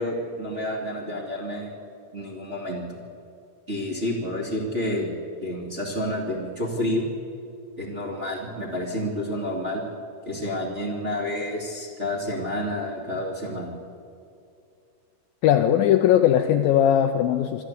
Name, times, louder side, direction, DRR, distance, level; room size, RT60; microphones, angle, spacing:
voice 1, 0.0-1.7 2.1-2.9 3.7-5.1 5.4-7.1 7.8-9.8 10.3-13.7, left 1 dB, 25° right, -3 dB, 1.8 m, -29 dB
voice 2, 15.4-17.6, left 10 dB, 80° left, 7 dB, 2.1 m, -19 dB
25.0 x 13.0 x 8.2 m, 2.5 s
omnidirectional pair, 4.8 m